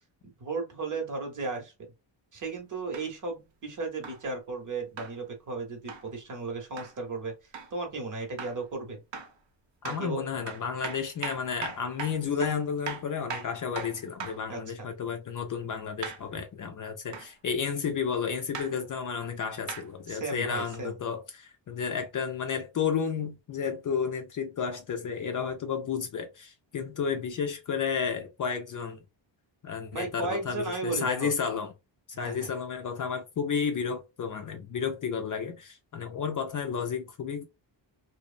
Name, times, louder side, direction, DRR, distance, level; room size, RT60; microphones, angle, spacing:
voice 1, 0.4-1.7 2.3-7.3 7.7-9.0 9.8-10.3 14.5-14.9 20.1-21.0 29.9-31.3 32.1-32.5, right 3 dB, 40° right, 0.9 m, -35 dB
sound 1, 2.9-3.1 4.0-4.2 5.0-5.2 5.9-6.1 6.8-6.9 7.5-7.7 8.4-8.6 9.1-9.4 9.8-10.1 10.5-14.5 16.0-16.3 17.1-17.3 18.5-18.7 19.7-19.9 20.7-20.8, right 6 dB, 65° right, 0.8 m, -39 dB
voice 2, 9.8-29.0 29.6-31.7 32.2-37.5, left 6 dB, 45° left, 0.4 m, -32 dB
2.9 x 2.0 x 2.4 m
wide cardioid pair, 145°, 47 cm